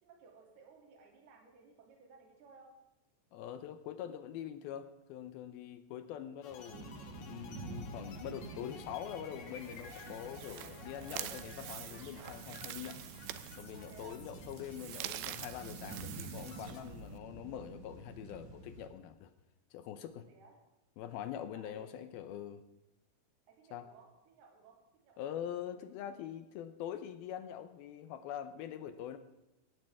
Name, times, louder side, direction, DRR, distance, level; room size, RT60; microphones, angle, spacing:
voice 1, 0.0-2.7 13.7-14.2 20.3-20.5 21.5-22.0 23.5-24.8 25.0-26.1, right 5 dB, 65° right, 0 dB, 4.6 m, -59 dB
voice 2, 3.3-13.0 13.6-19.3 19.7-20.3 21.0-22.6 23.7-23.9 25.2-29.2, left 10 dB, 80° left, 10 dB, 2.3 m, -44 dB
sound 1, 6.4-16.8, left 6 dB, 60° left, 2.8 m, -54 dB
sound 2, 6.7-18.9, right 3 dB, 45° right, 2.5 m, -49 dB
sound 3, 9.5-17.2, right 14 dB, 85° right, 2.9 m, -47 dB
18.0 x 16.0 x 3.6 m, 0.94 s
omnidirectional pair, 5.0 m